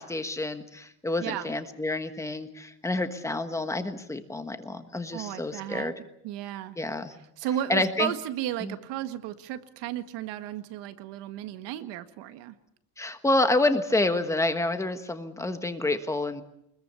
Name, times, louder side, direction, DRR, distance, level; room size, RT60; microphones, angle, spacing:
voice 1, 0.0-5.9 6.8-7.1 7.7-8.1 8.6-8.7 13.0-16.4, left 2 dB, 5° left, 8 dB, 1.4 m, -28 dB
voice 2, 1.2-1.5 5.1-5.9 6.2-6.8 7.4-12.6, right 12 dB, 80° right, 10 dB, 1.9 m, -34 dB
24.5 x 21.5 x 7.0 m, 0.76 s
cardioid pair, 175°, 41 cm